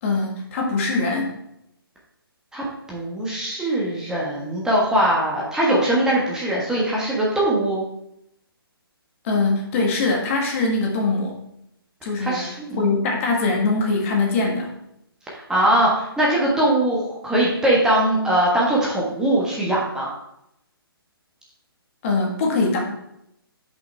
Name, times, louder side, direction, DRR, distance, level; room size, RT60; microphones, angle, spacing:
voice 1, 0.0-1.3 9.2-11.3 12.0-12.5 12.8-14.7 22.0-22.8, left 3 dB, 35° left, 0 dB, 1.7 m, -22 dB
voice 2, 2.5-7.8 12.2-12.9 15.3-20.1, right 1 dB, 5° right, -5 dB, 1.4 m, -21 dB
9.8 x 5.5 x 3.4 m, 0.80 s
figure-of-eight pair, 135°, 13 cm